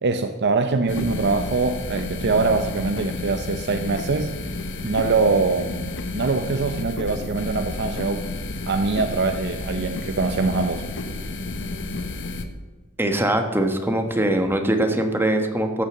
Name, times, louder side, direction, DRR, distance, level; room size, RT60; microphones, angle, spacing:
voice 1, 0.0-4.3 4.8-8.3 8.7-10.8, right 3 dB, 55° right, 7 dB, 0.7 m, -23 dB
sound 1, 0.9-12.4, left 2 dB, 60° left, 1.1 m, -31 dB
voice 2, 13.0-15.8, right 1 dB, 10° right, 5 dB, 1.2 m, -22 dB
14.5 x 6.7 x 7.2 m, 1.3 s
head